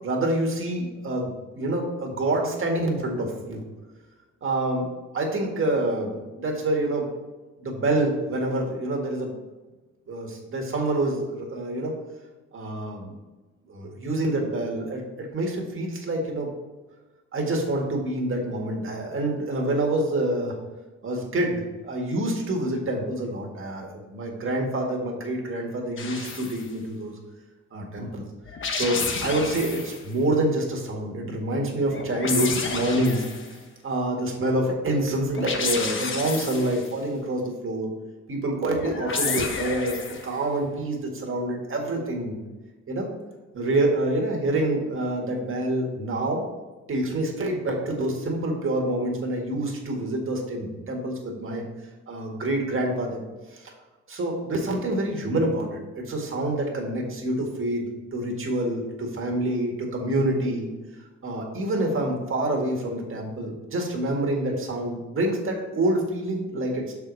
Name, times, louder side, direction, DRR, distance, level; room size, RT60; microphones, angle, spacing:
voice 1, 0.0-3.6 4.4-4.9 5.1-7.1 7.6-9.3 10.1-11.9 12.5-13.1 13.7-16.5 17.3-20.6 21.0-27.1 27.7-28.2 28.7-33.3 33.8-37.9 38.3-42.4 42.9-43.1 43.5-46.4 46.9-51.6 52.1-53.2 53.5-53.7 54.1-57.9 58.1-60.7 61.2-66.9, right 1 dB, 45° right, 0 dB, 1.9 m, -27 dB
sound 1, 26.0-26.6 28.4-30.0 31.9-33.6 35.3-36.9 38.7-40.3, left 4 dB, 40° left, 1.0 m, -30 dB
6.2 x 4.9 x 4.0 m, 1.2 s
cardioid pair, 90°, 30 cm